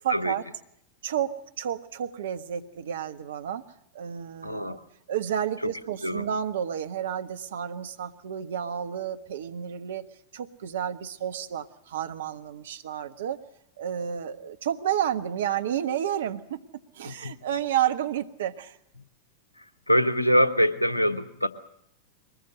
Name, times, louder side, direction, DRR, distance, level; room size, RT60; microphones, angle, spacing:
voice 1, 0.0-0.4 1.0-3.6 3.9-4.8 5.1-10.0 10.3-13.4 13.8-16.6 16.9-18.8, right 10 dB, 60° right, 9 dB, 1.4 m, -31 dB
voice 2, 4.4-4.8 5.6-5.7 6.0-6.3 17.0-17.4 19.6-21.5, equal, 85° left, 12 dB, 1.2 m, -24 dB
22.5 x 20.5 x 7.8 m, 0.71 s
figure-of-eight pair, 90°, 0 cm